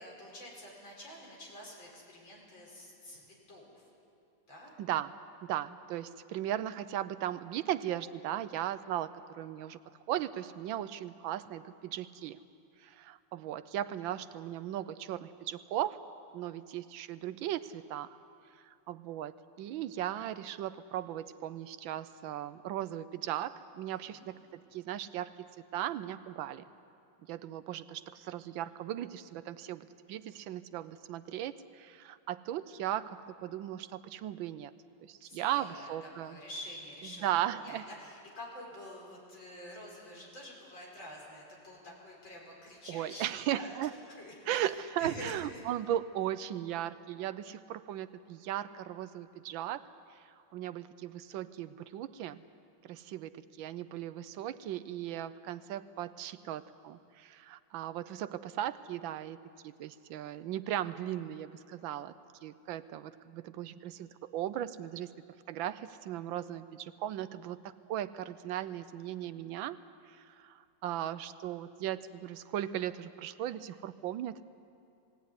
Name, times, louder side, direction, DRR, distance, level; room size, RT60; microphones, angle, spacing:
voice 1, 0.0-3.8 4.5-4.7 24.1-24.3 35.2-43.8 44.2-44.7 45.0-45.6, left 1 dB, 70° left, -2 dB, 6.0 m, -48 dB
voice 2, 4.8-5.1 5.4-9.8 10.1-12.4 12.8-16.0 16.3-18.2 18.6-26.6 27.2-34.7 35.0-36.4 37.2-37.9 42.9-43.9 44.5-49.9 50.5-52.4 52.8-62.1 62.4-65.1 65.5-69.8 70.1-74.4, right 12 dB, 80° right, 14 dB, 1.4 m, -37 dB
21.0 x 17.0 x 9.6 m, 2.6 s
omnidirectional pair, 2.1 m